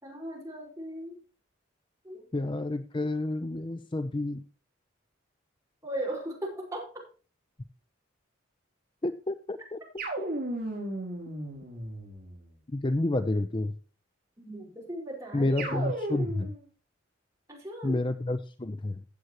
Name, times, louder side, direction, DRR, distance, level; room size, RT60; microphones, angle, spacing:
voice 1, 0.0-1.2 2.0-2.2 5.8-6.8 14.4-15.8 17.5-18.0, right 1 dB, 15° right, -2 dB, 5.0 m, -37 dB
voice 2, 2.3-4.4 9.0-9.8 10.2-10.3 12.7-13.8 15.3-16.5 17.8-19.0, left 2 dB, 25° left, 11 dB, 0.6 m, -30 dB
sound 1, 10.0-12.5 15.6-16.6, right 1 dB, 50° right, 5.0 m, -35 dB
16.0 x 7.9 x 3.0 m, 0.36 s
head